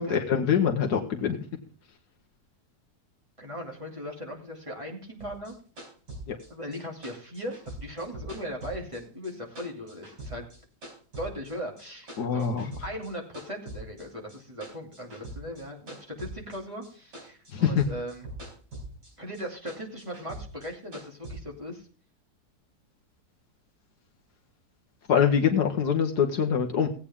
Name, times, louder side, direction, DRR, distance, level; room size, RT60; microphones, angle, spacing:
voice 1, 0.0-1.4 6.3-6.4 12.2-12.7 17.5-17.8 25.1-26.9, left 7 dB, 70° left, 2 dB, 1.6 m, -24 dB
voice 2, 3.4-5.5 6.5-10.5 11.2-12.5 12.8-18.3 19.2-21.9 25.5-25.7, equal, 20° right, -1 dB, 2.5 m, -38 dB
sound 1, 5.2-9.3 9.6-11.5 11.8-13.1 13.3-16.9 17.1-19.1 19.3-21.4, right 1 dB, 75° right, 5.1 m, -42 dB
17.0 x 8.5 x 3.6 m, 0.40 s
omnidirectional pair, 1.8 m